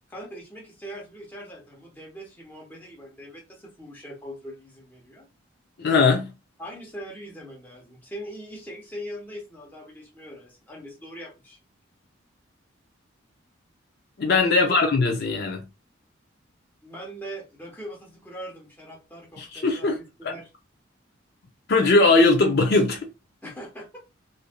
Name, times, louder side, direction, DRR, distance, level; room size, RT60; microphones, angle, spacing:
voice 1, 0.1-5.3 6.6-11.6 14.5-14.7 16.8-20.5 23.4-24.0, equal, 10° left, 1.0 m, -41 dB
voice 2, 5.8-6.3 14.2-15.7 19.4-20.0 20.2-20.3 21.7-23.1, left 3 dB, 55° left, 0.5 m, -20 dB
3.1 x 2.6 x 2.2 m
head